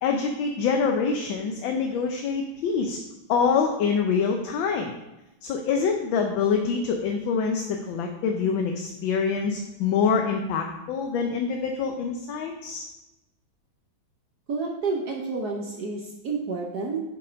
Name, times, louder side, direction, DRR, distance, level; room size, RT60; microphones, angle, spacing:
voice 1, 0.0-3.0 3.3-4.9 5.4-12.8, left 5 dB, 75° left, 3 dB, 1.4 m, -25 dB
voice 2, 14.5-17.0, right 4 dB, 60° right, 0 dB, 1.2 m, -30 dB
6.9 x 5.3 x 5.1 m, 0.96 s
omnidirectional pair, 2.3 m